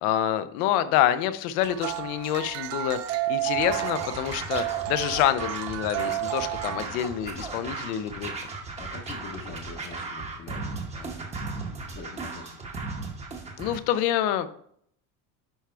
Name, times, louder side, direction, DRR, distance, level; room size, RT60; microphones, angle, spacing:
voice 1, 0.0-8.3 13.6-14.5, left 11 dB, 85° left, 12 dB, 0.8 m, -27 dB
sound 1, 1.6-6.9, right 16 dB, 40° right, 0.4 m, -31 dB
Scratching (performance technique), 3.5-13.8, right 3 dB, 15° right, 0.9 m, -36 dB
voice 2, 6.7-7.0 8.8-12.7, left 5 dB, 30° left, 1 dB, 0.8 m, -45 dB
10.0 x 3.5 x 4.4 m, 0.65 s
cardioid pair, 165°, 41 cm